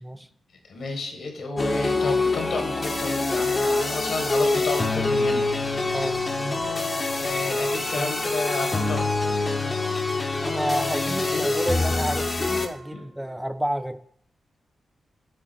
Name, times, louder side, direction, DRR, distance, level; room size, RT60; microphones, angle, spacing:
voice 1, 0.7-5.4 7.2-9.1 11.2-11.4 12.9-13.1, left 3 dB, 70° left, 3 dB, 1.9 m, -31 dB
sound 1, 1.6-12.7, left 3 dB, 25° left, 0.9 m, -25 dB
Wind instrument woodwind instrument, 5.6-13.6, right 2 dB, 50° right, 1.5 m, -45 dB
voice 2, 10.4-14.0, equal, 5° right, 13 dB, 0.4 m, -30 dB
7.8 x 3.8 x 6.2 m, 0.63 s
wide cardioid pair, 120°, 0 cm